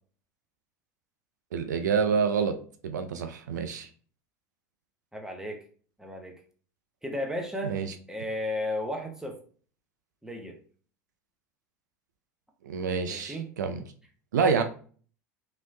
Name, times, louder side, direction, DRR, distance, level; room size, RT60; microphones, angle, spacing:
voice 1, 1.5-2.6 2.8-3.9 7.6-7.9 12.6-13.8 14.3-14.6, right 6 dB, 80° right, 7 dB, 0.4 m, -27 dB
voice 2, 5.1-5.6 6.0-6.3 7.0-7.7 8.1-9.4 10.2-10.6 13.1-13.5, left 1 dB, 5° right, 2 dB, 0.8 m, -34 dB
3.0 x 2.8 x 2.6 m, 0.43 s
hypercardioid pair, 80°, 9 cm